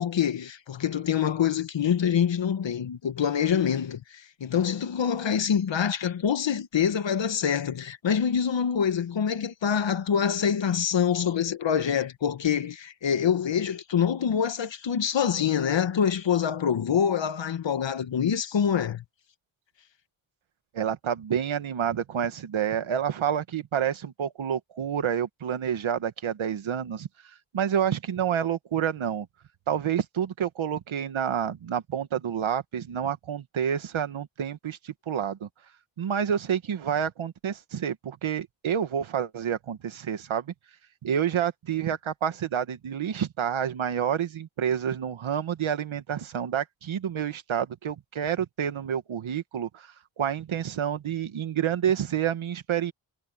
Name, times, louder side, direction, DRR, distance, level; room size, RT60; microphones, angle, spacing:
voice 1, 0.0-19.0, left 8 dB, 70° left, 1.5 m, -25 dB
voice 2, 20.7-27.1 27.5-29.3 29.7-35.5 36.0-40.5 41.0-52.9, right 8 dB, 90° right, 1.8 m, -28 dB
cardioid pair, 75°, 46 cm